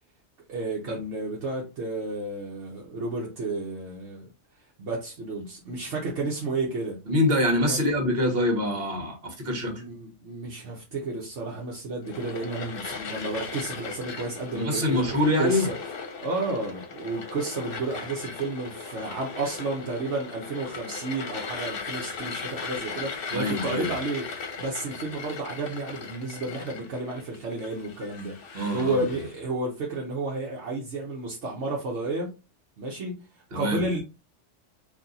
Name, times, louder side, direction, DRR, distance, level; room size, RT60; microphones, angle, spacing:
voice 1, 0.5-4.3 4.8-7.0 7.7-7.8 9.6-15.7 16.2-32.3 32.8-34.0, right 2 dB, 70° right, 1.2 m, -32 dB
voice 2, 7.1-9.8 14.5-15.7 23.3-23.9 28.5-29.0 33.5-33.8, left 1 dB, 55° right, 1.5 m, -25 dB
sound 1, 12.0-29.3, left 5 dB, 55° left, 0.9 m, -38 dB
4.2 x 2.7 x 3.9 m
omnidirectional pair, 1.2 m